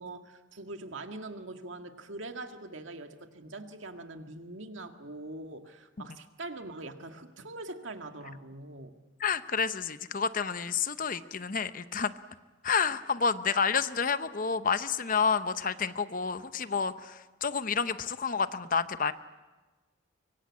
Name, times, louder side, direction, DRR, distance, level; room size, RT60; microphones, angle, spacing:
voice 1, 0.0-8.9 11.4-11.5, right 2 dB, 80° right, 5 dB, 2.0 m, -43 dB
voice 2, 9.2-12.1 12.6-19.1, left 5 dB, 45° left, 12 dB, 0.8 m, -29 dB
25.0 x 23.5 x 8.6 m, 1.2 s
head